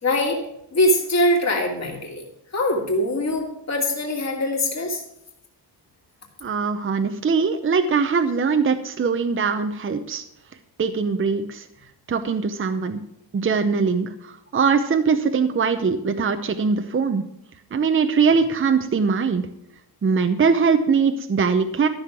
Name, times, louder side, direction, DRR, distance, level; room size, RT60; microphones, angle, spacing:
voice 1, 0.0-2.2 2.5-5.0, left 1 dB, 40° left, 1 dB, 2.8 m, -23 dB
voice 2, 6.4-10.2 10.8-11.6 12.1-13.0 13.3-17.2 17.7-19.5 20.0-21.9, right 5 dB, 30° right, 8 dB, 0.7 m, -21 dB
13.5 x 6.5 x 7.4 m, 0.77 s
wide cardioid pair, 175°, 42 cm